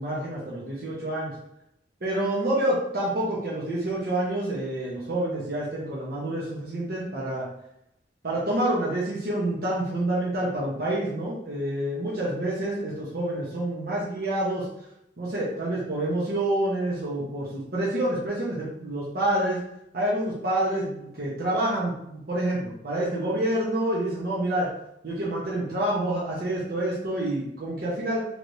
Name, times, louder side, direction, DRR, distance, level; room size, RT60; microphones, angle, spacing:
voice 1, 0.0-1.3 2.0-7.5 8.2-14.7 15.2-19.6 19.9-24.7 25.0-28.2, right 1 dB, 55° right, -6 dB, 0.8 m, -28 dB
3.4 x 3.0 x 2.6 m, 0.80 s
head